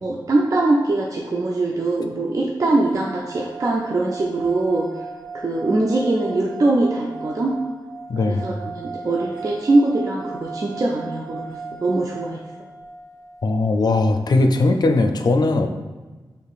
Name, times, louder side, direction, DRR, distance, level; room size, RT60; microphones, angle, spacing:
voice 1, 0.0-4.9 5.3-7.5 8.3-11.5 11.8-12.4, right 2 dB, 45° right, -1 dB, 0.5 m, -22 dB
sound 1, 2.8-14.0, right 4 dB, 80° right, 1.0 m, -37 dB
voice 2, 8.1-8.5 13.4-15.7, left 2 dB, 60° left, 5 dB, 0.5 m, -19 dB
5.5 x 3.6 x 2.4 m, 1.3 s
cardioid pair, 55°, 8 cm